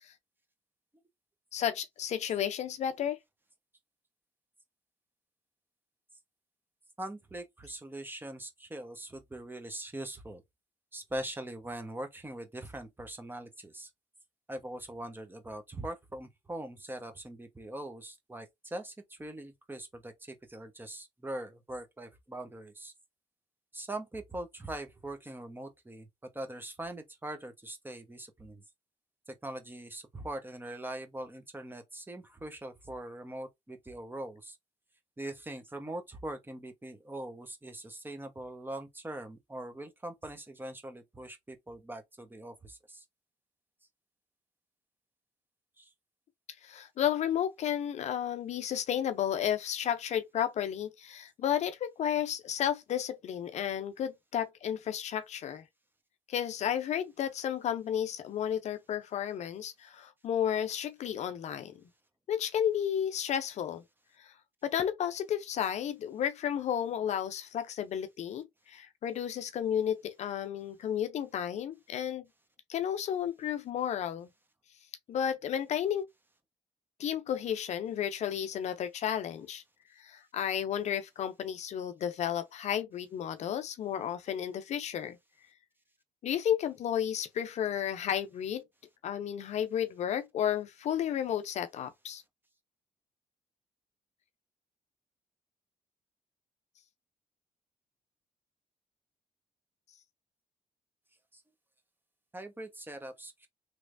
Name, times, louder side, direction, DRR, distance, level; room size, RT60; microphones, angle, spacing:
voice 1, 1.5-3.2 46.6-55.6 56.3-61.8 62.3-63.8 64.2-64.3 64.6-72.3 72.7-74.3 75.1-76.1 77.0-79.6 80.0-85.2 86.2-88.6 89.0-92.2, left 9 dB, 65° left, 0.5 m, -32 dB
voice 2, 7.0-10.4 10.9-13.9 14.5-18.9 19.2-20.1 20.5-22.9 23.7-26.0 26.3-28.6 29.4-34.5 35.2-42.8 45.8-45.9 102.3-103.5, right 1 dB, 15° right, 1.0 m, -42 dB
3.3 x 3.1 x 2.6 m
supercardioid pair, 60°, 13 cm